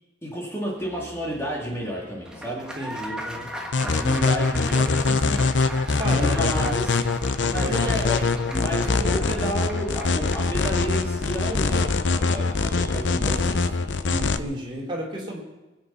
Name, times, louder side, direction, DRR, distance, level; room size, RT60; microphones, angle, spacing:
voice 1, 0.2-2.7 3.8-5.6 6.1-7.0 7.4-11.9 12.2-13.8, right 1 dB, 15° left, -2 dB, 2.2 m, -31 dB
sound 1, 0.8-14.4, left 2 dB, 65° left, 3.1 m, -45 dB
Applause, 2.3-12.7, equal, 5° right, 1.4 m, -39 dB
voice 2, 2.6-3.5 6.0-6.6 7.6-8.0 14.1-15.4, right 1 dB, 25° right, -2 dB, 3.3 m, -32 dB
sound 2, 3.7-14.4, left 4 dB, 85° left, 0.7 m, -23 dB
23.5 x 8.2 x 5.7 m, 1.1 s
head